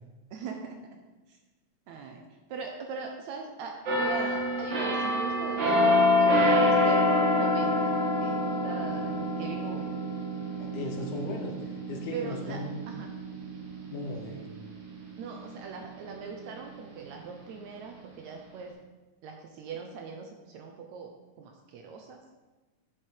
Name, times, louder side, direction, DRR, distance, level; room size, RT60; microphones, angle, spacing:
voice 1, 0.3-0.8 1.3-1.4 1.9-2.2 2.5-9.9 12.1-12.6 12.9-13.1 15.2-18.7 19.2-21.1 21.4-22.2, right 5 dB, 75° right, 3 dB, 1.8 m, -40 dB
sound 1, 3.9-15.4 15.8-16.1, left 1 dB, 50° right, 1.4 m, -27 dB
voice 2, 10.6-12.7 13.9-14.5, left 2 dB, 75° left, 2 dB, 2.3 m, -37 dB
9.0 x 4.9 x 4.6 m, 1.2 s
omnidirectional pair, 3.7 m